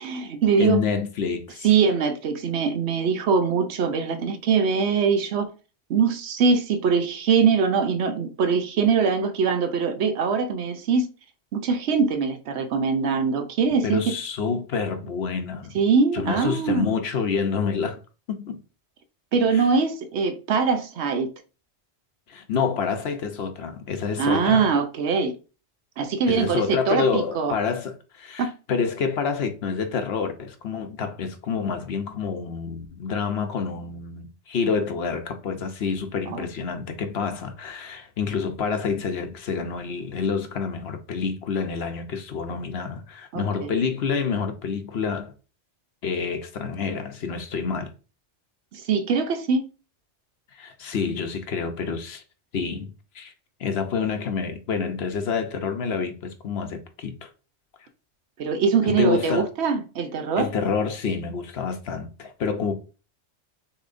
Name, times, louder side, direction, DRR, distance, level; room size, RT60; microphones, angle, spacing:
voice 1, 0.0-0.8 1.6-5.5 5.9-11.1 11.5-14.1 15.7-16.9 19.3-21.3 24.2-25.4 26.0-27.5 28.4-28.5 36.3-36.5 43.3-43.7 48.7-49.6 58.4-60.5, right 5 dB, 75° right, 0.9 m, -22 dB
voice 2, 0.6-1.6 13.8-15.7 16.1-18.0 18.3-18.6 19.5-19.7 22.3-24.7 26.3-45.3 46.0-47.9 50.5-52.2 52.5-53.3 53.6-57.3 58.8-59.5 60.4-62.7, left 5 dB, 65° left, 0.9 m, -28 dB
6.4 x 3.1 x 2.5 m
omnidirectional pair, 1.2 m